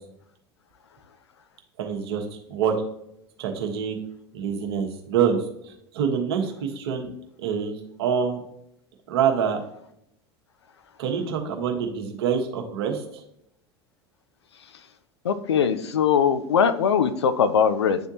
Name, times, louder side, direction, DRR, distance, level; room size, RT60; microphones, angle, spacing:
voice 1, 1.8-2.2 2.5-2.7 3.4-4.0 4.3-5.4 5.9-7.1 7.4-8.4 9.1-9.6 11.0-13.0, right 7 dB, 65° right, 3 dB, 1.1 m, -25 dB
voice 2, 15.2-18.0, left 7 dB, 80° left, 12 dB, 0.5 m, -21 dB
10.0 x 3.5 x 2.8 m, 0.75 s
figure-of-eight pair, 80°, 14 cm